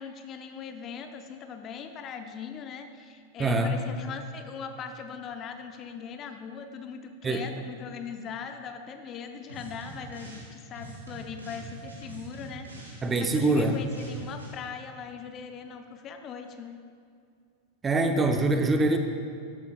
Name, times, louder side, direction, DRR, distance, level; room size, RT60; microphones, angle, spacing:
voice 1, 0.0-16.8, left 6 dB, 30° left, 7 dB, 0.6 m, -40 dB
voice 2, 3.4-3.8 7.2-7.5 13.0-13.8 17.8-19.0, right 2 dB, 15° right, 5 dB, 0.7 m, -24 dB
sound 1, 9.5-10.5 10.8-14.5, right 2 dB, 75° right, 2.6 m, -44 dB
13.5 x 11.0 x 2.4 m, 2.3 s
figure-of-eight pair, 90°, 0 cm